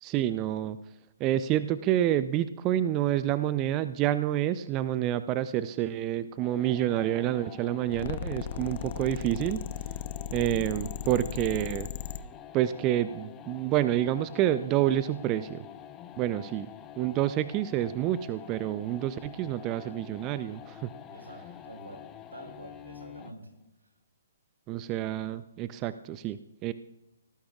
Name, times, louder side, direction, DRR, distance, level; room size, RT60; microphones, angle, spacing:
voice 1, 0.0-0.8 1.2-9.7 10.3-11.9 12.5-15.6 16.2-16.7 17.0-20.9 24.7-26.7, right 12 dB, 25° right, 13 dB, 0.5 m, -28 dB
sound 1, 6.4-23.4, left 10 dB, 20° left, 0.8 m, -47 dB
sound 2, 7.9-12.2, left 9 dB, 45° left, 0.9 m, -36 dB
voice 2, 21.1-22.0 22.3-23.5, right 1 dB, 85° right, 1 dB, 6.4 m, -47 dB
26.5 x 18.5 x 2.4 m, 0.90 s
figure-of-eight pair, 130°, 0 cm